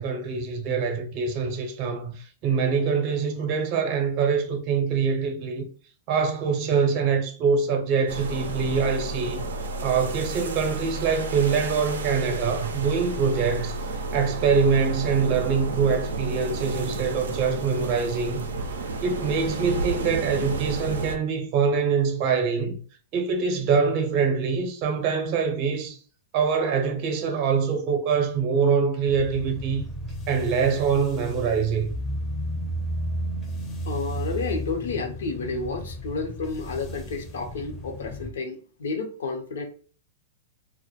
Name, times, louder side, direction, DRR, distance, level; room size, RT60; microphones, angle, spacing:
voice 1, 0.0-5.7 6.1-9.5 9.8-18.5 19.0-22.8 23.1-26.0 26.3-29.8 30.3-31.9, right 5 dB, 40° right, 0.6 m, -24 dB
sound 1, 8.1-21.2, right 3 dB, 90° right, 0.4 m, -31 dB
sound 2, 29.1-38.3, equal, 20° left, 0.5 m, -33 dB
voice 2, 33.8-39.6, left 4 dB, 80° left, 0.6 m, -31 dB
2.1 x 2.1 x 2.8 m
hypercardioid pair, 130°, 0 cm